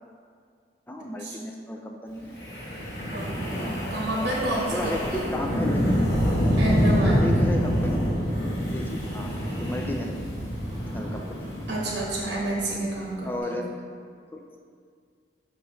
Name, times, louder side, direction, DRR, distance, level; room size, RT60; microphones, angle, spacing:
voice 1, 0.9-2.4 4.2-4.4 4.7-6.0 7.0-8.0 8.7-9.3 9.6-10.1 10.9-11.5 13.2-13.6 14.3-14.4, left 1 dB, 10° left, 2 dB, 0.3 m, -33 dB
Wind, 2.3-12.6, equal, 65° left, 1.5 m, -26 dB
voice 2, 3.1-5.2 6.5-7.4 11.7-13.6, right 1 dB, 70° right, -4 dB, 1.1 m, -30 dB
5.9 x 5.3 x 3.0 m, 2.1 s
head